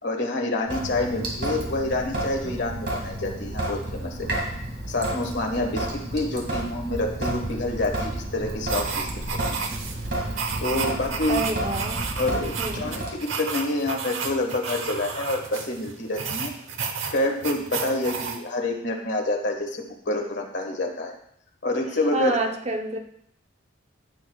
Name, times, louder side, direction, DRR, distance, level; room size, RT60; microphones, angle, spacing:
voice 1, 0.0-4.3 4.9-9.1 10.6-11.4 12.1-16.5 17.1-21.1 21.6-22.4, left 2 dB, 60° left, 1 dB, 1.6 m, -27 dB
Sink (filling or washing) / Drip, 0.7-13.1, right 1 dB, 55° right, 2.2 m, -31 dB
sound 1, 8.7-18.4, right 5 dB, 85° right, 0.9 m, -32 dB
voice 2, 11.3-12.1 12.6-13.0 22.1-23.0, right 2 dB, 35° right, 4 dB, 0.8 m, -28 dB
16.0 x 6.4 x 2.3 m, 0.71 s
head